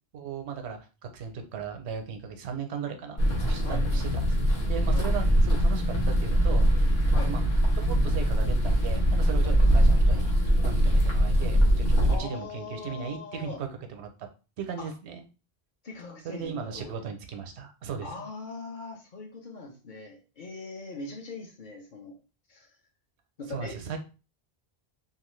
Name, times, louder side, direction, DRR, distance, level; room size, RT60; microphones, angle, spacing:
voice 1, 0.1-3.2 3.4-4.4 4.6-6.9 7.2-7.4 7.7-10.3 10.6-14.1 14.6-15.2 16.2-18.2 23.5-24.0, right 6 dB, 90° right, 6 dB, 0.9 m, -37 dB
sound 1, 3.2-12.2, equal, 70° left, 1.1 m, -22 dB
voice 2, 12.1-13.6 14.8-14.9 15.8-17.0 18.0-22.2 22.5-22.7 23.4-23.9, left 3 dB, 55° left, 1 dB, 0.8 m, -41 dB
2.8 x 2.3 x 3.1 m, 0.33 s
omnidirectional pair, 1.1 m